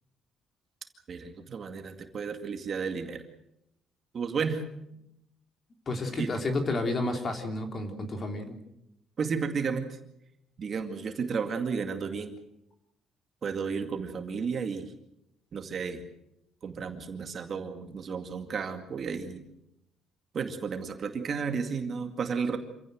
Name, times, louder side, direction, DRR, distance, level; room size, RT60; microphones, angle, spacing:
voice 1, 1.1-3.2 4.1-4.6 6.2-6.3 9.2-10.0 10.6-12.3 13.4-14.9 15.5-16.0 16.6-19.4 20.3-22.6, right 5 dB, 35° right, 6 dB, 2.2 m, -33 dB
voice 2, 5.9-8.6, left 2 dB, 30° left, 5 dB, 3.3 m, -31 dB
27.5 x 16.5 x 8.0 m, 0.82 s
cardioid pair, 170°, 0 cm